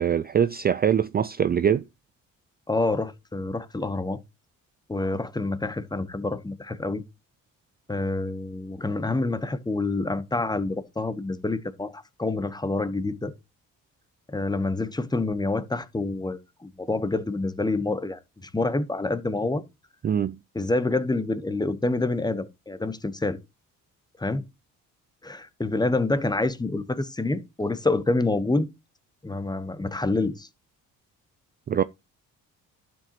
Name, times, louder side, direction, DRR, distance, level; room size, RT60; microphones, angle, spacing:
voice 1, 0.0-1.8 20.0-20.4 31.7-31.8, right 8 dB, 30° right, 0.4 m, -23 dB
voice 2, 2.7-4.2 4.9-7.0 7.9-13.3 14.3-19.6 20.5-23.4 24.2-24.4 25.2-28.7 29.2-30.5, left 2 dB, 10° left, 1.1 m, -27 dB
11.5 x 7.6 x 3.0 m
cardioid pair, 95°, 33 cm